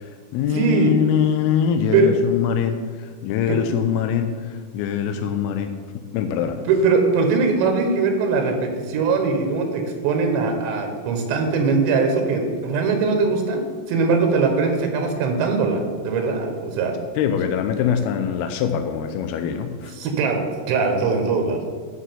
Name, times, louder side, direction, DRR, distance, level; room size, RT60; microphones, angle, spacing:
voice 1, 0.0-6.6 17.2-19.9, left 8 dB, 80° left, 7 dB, 2.4 m, -23 dB
voice 2, 0.5-0.9 1.9-2.2 3.5-3.6 6.7-16.9 20.0-21.7, right 4 dB, 85° right, 4 dB, 3.6 m, -21 dB
9.6 x 6.1 x 7.6 m, 1.5 s
omnidirectional pair, 5.0 m